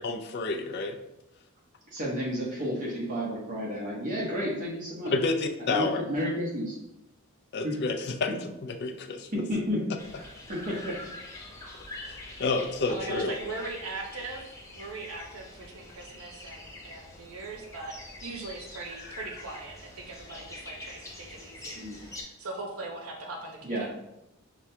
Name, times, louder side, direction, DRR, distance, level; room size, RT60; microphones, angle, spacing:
voice 1, 0.0-1.0 5.1-6.0 7.5-8.3 8.6-9.3 12.0-13.3, left 3 dB, 50° left, 5 dB, 0.4 m, -29 dB
voice 2, 1.9-5.1 5.6-6.8 7.6-7.8 9.3-9.8 10.2-11.1 21.7-22.0 23.6-23.9, equal, 40° right, -4 dB, 1.1 m, -31 dB
sound 1, 10.0-22.2, left 2 dB, 15° left, 0.7 m, -45 dB
voice 3, 12.9-14.4 14.7-23.7, right 3 dB, 90° right, 2 dB, 0.8 m, -40 dB
5.9 x 2.3 x 2.7 m, 0.90 s
head